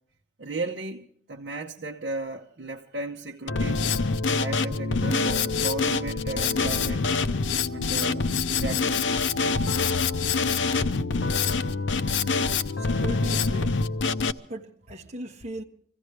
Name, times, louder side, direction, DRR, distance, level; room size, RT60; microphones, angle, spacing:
voice 1, 0.4-3.9 4.4-7.1 7.7-8.3 8.5-9.1 10.8-10.9 12.1-12.7 14.2-14.4, right 2 dB, 65° right, 0.9 m, -35 dB
Drum kit, 3.5-14.3, left 4 dB, 85° left, 0.6 m, -25 dB
voice 2, 12.6-13.8 14.5-15.6, right 1 dB, 35° right, 1.2 m, -38 dB
25.0 x 15.5 x 3.3 m
head